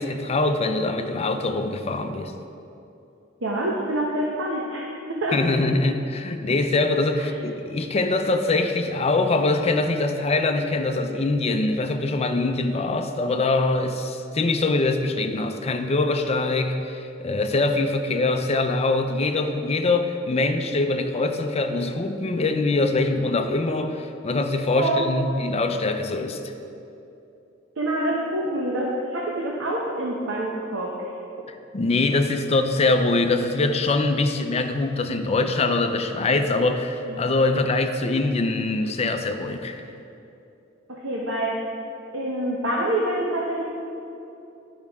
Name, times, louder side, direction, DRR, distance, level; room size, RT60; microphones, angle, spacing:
voice 1, 0.0-2.3 5.3-26.4 31.7-39.8, left 2 dB, 30° left, 6 dB, 0.5 m, -23 dB
voice 2, 3.4-4.8 5.1-5.3 7.2-7.3 24.7-25.1 26.3-26.4 27.8-30.9 37.1-37.2 40.9-41.7 42.1-43.6, right 1 dB, 80° right, -3 dB, 0.9 m, -26 dB
11.0 x 5.5 x 3.5 m, 2.8 s
head